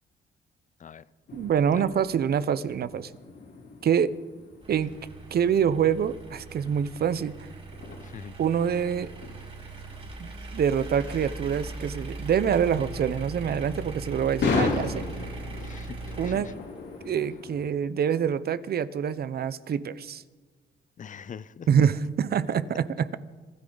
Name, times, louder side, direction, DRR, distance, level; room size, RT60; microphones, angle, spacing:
sound 1, 1.3-17.7, left 4 dB, 60° left, 3.5 m, -37 dB
voice 1, 1.3-3.1 3.8-4.1 4.7-4.9 5.3-7.3 8.4-9.1 10.2-15.1 16.2-16.5 17.0-20.2 21.7-23.2, right 8 dB, 50° right, 16 dB, 0.8 m, -26 dB
sound 2, 4.6-16.9, right 2 dB, 30° right, 5.6 m, -40 dB
voice 2, 8.0-8.4 15.6-16.5 17.0-17.1 21.0-21.9, left 7 dB, 40° left, 17 dB, 0.6 m, -43 dB
25.5 x 13.5 x 4.0 m, 1.4 s
cardioid pair, 90°, 20 cm